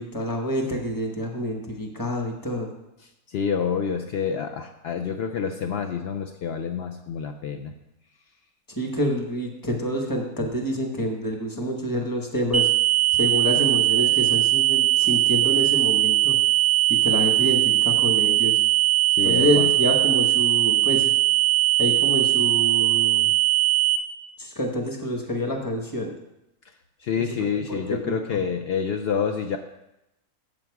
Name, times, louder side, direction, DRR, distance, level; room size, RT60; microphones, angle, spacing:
voice 1, 0.0-2.7 8.8-12.7 13.2-16.4 16.9-18.6 19.2-21.1 21.8-23.3 24.4-26.1 27.2-28.2, equal, 15° left, 2 dB, 0.9 m, -27 dB
voice 2, 3.0-7.7 19.2-19.7 27.0-29.6, left 6 dB, 80° left, 5 dB, 0.5 m, -28 dB
sound 1, 12.5-24.0, right 15 dB, 20° right, 0.3 m, -20 dB
7.2 x 7.0 x 4.7 m, 0.89 s
omnidirectional pair, 1.6 m